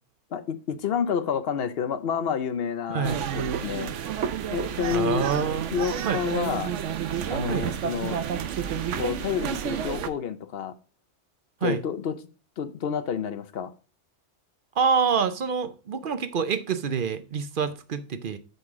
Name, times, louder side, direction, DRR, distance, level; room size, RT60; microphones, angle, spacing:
voice 1, 0.3-3.9 4.5-5.3 5.7-6.7 7.3-8.2 8.9-10.7 11.6-12.2 12.6-13.7, left 7 dB, 60° left, 0.9 m, -29 dB
voice 2, 2.9-3.2 4.9-5.7 6.0-6.2 7.5-7.7 11.6-11.8 14.8-18.4, right 6 dB, 55° right, 0.8 m, -26 dB
sound 1, 3.0-10.1, right 8 dB, 85° right, 1.0 m, -30 dB
7.8 x 5.4 x 3.6 m
omnidirectional pair, 1.2 m